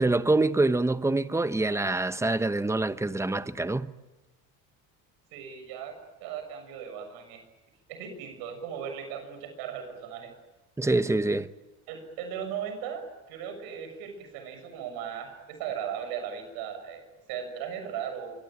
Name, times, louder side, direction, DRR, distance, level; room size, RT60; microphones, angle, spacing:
voice 1, 0.0-3.9 10.8-11.5, right 2 dB, 10° right, 1.0 m, -25 dB
voice 2, 5.3-5.9 6.2-7.4 7.9-10.3 11.9-18.3, right 8 dB, 85° right, 6.7 m, -37 dB
25.5 x 24.5 x 8.9 m
supercardioid pair, 100°, 36 cm